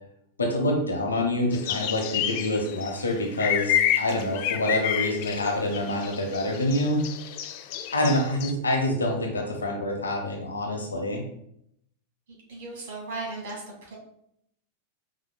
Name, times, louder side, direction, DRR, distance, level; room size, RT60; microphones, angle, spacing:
voice 1, 0.4-7.0 7.9-11.2, left 1 dB, 75° left, 1 dB, 0.9 m, -26 dB
sound 1, 1.5-8.5, left 10 dB, 45° left, 0.3 m, -29 dB
voice 2, 12.5-14.0, right 3 dB, 55° right, -2 dB, 1.5 m, -36 dB
5.2 x 3.3 x 2.2 m, 0.73 s
figure-of-eight pair, 90°, 0 cm